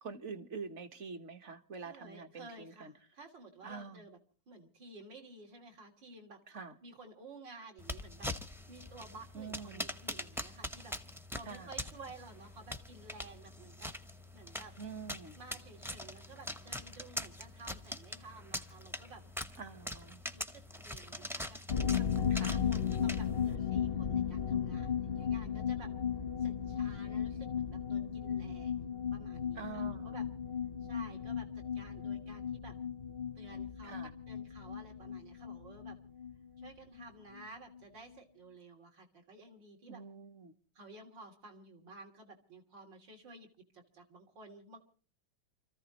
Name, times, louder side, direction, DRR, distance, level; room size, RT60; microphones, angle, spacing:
voice 1, 0.0-2.9 3.6-4.1 6.5-6.7 9.3-9.8 11.5-11.7 14.8-15.4 19.6-20.2 22.3-22.6 29.6-30.1 33.8-34.1 39.9-40.5, right 5 dB, 40° right, 1.4 m, -46 dB
voice 2, 1.8-4.2 4.5-6.4 6.8-13.9 14.3-14.7 15.3-19.2 20.3-21.6 21.9-25.9 26.4-30.3 30.8-32.8 33.4-34.0 34.3-36.0 36.6-40.0 40.8-44.8, right 3 dB, 70° right, 3.7 m, -53 dB
sound 1, 7.8-23.6, left 1 dB, 5° right, 0.4 m, -44 dB
sound 2, 21.7-37.1 37.3-37.4 37.7-37.8, left 8 dB, 45° left, 0.7 m, -35 dB
29.0 x 14.5 x 3.0 m
omnidirectional pair, 2.0 m